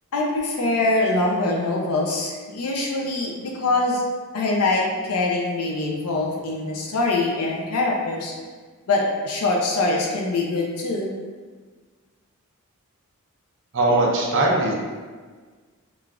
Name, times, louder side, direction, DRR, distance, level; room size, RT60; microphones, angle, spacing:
voice 1, 0.1-4.0 4.3-8.3 8.9-11.1, left 2 dB, 80° left, -1 dB, 0.5 m, -23 dB
voice 2, 13.7-14.7, right 2 dB, 55° right, -3 dB, 0.7 m, -20 dB
4.9 x 2.4 x 2.4 m, 1.5 s
head